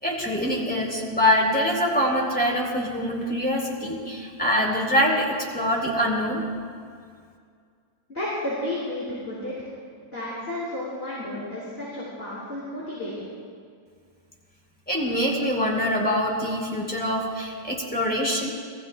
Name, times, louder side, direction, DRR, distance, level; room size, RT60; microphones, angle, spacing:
voice 1, 0.0-6.4 14.9-18.5, equal, 5° left, -2 dB, 3.3 m, -24 dB
voice 2, 8.1-9.7 10.0-13.1, left 1 dB, 30° left, -8 dB, 4.7 m, -32 dB
29.5 x 20.0 x 2.2 m, 2.1 s
omnidirectional pair, 2.1 m